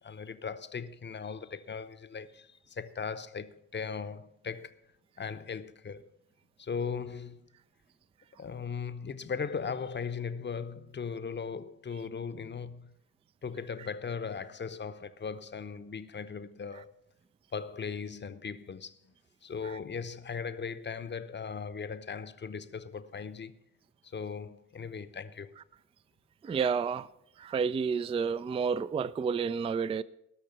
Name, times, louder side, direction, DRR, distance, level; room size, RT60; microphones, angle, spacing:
voice 1, 0.0-4.8 5.2-6.1 6.6-7.5 8.4-13.0 13.4-17.0 17.5-19.1 19.4-23.6 24.0-25.5, left 6 dB, 25° left, 0.8 m, -38 dB
voice 2, 26.4-27.1 27.4-30.0, right 6 dB, 15° right, 0.3 m, -30 dB
18.0 x 6.5 x 5.6 m
hypercardioid pair, 40°, 43 cm